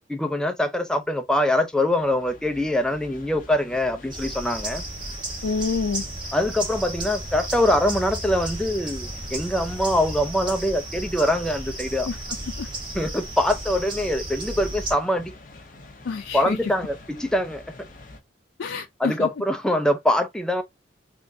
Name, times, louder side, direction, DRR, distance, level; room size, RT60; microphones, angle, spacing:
voice 1, 0.1-4.8 6.3-12.1 12.9-15.3 16.3-17.6 19.0-20.6, left 1 dB, 5° left, 0.4 m, -23 dB
sound 1, 1.7-18.2, left 2 dB, 45° left, 0.8 m, -45 dB
sound 2, 4.1-14.9, right 1 dB, 25° right, 1.1 m, -34 dB
voice 2, 5.4-6.0 12.1-12.2 12.6-12.7 16.1-16.7 18.6-19.3, left 4 dB, 90° left, 0.4 m, -27 dB
3.6 x 2.5 x 2.6 m
head